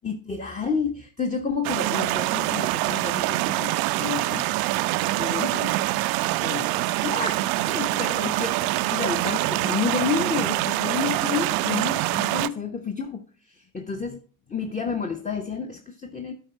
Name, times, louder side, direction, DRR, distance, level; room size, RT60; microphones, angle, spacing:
voice 1, 0.0-4.5 4.8-4.9 5.2-5.7 6.4-6.7 7.0-14.2 14.5-16.3, left 5 dB, 15° left, 1.0 m, -30 dB
sound 1, 1.6-12.5, right 18 dB, 50° right, 0.5 m, -25 dB
13.0 x 4.6 x 4.5 m
figure-of-eight pair, 50°, 47 cm